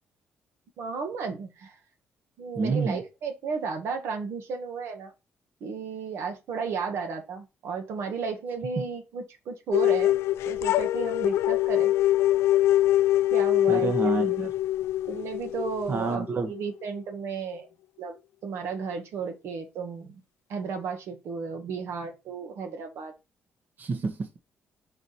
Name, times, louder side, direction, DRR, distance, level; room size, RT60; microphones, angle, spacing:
voice 1, 0.8-1.7 2.4-5.1 5.6-10.2 10.5-11.9 13.3-14.2 15.1-17.7 18.0-18.2 18.4-20.2 20.5-23.1, right 5 dB, 75° right, 1.7 m, -34 dB
voice 2, 2.5-3.0 8.8-8.9 13.7-14.5 15.9-16.5 23.8-24.4, right 4 dB, 45° right, 1.3 m, -28 dB
sound 1, 9.7-16.6, left 14 dB, 80° left, 0.4 m, -24 dB
4.9 x 4.8 x 4.2 m
cardioid pair, 90°, 4 cm